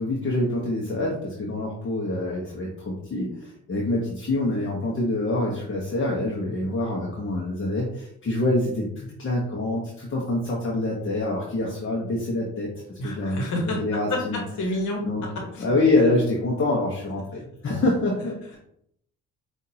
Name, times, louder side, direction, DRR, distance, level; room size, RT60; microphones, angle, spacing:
voice 1, 0.0-13.4 13.8-14.4 15.0-15.2 15.6-18.6, left 2 dB, 45° left, -3 dB, 1.1 m, -26 dB
voice 2, 13.0-13.8 14.1-14.2 14.6-15.0 15.5-15.7, left 1 dB, 75° left, 0 dB, 1.3 m, -28 dB
5.7 x 2.7 x 2.8 m, 0.71 s
cardioid pair, 90°, 30 cm